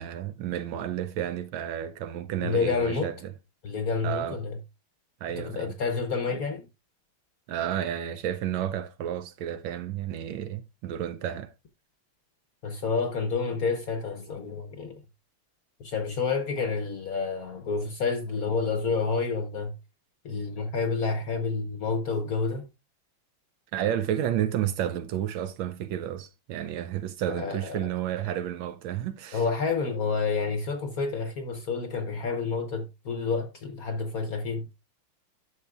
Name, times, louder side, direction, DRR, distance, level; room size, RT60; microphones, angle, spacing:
voice 1, 0.0-3.3 4.0-4.4 5.2-5.7 7.5-11.5 23.7-29.4, right 10 dB, 75° right, 1.2 m, -31 dB
voice 2, 2.4-3.1 3.6-4.6 5.4-6.7 12.6-15.0 15.8-19.7 20.2-22.7 27.2-27.9 29.3-34.7, left 4 dB, 60° left, 1.0 m, -29 dB
11.0 x 6.6 x 2.3 m
omnidirectional pair, 2.4 m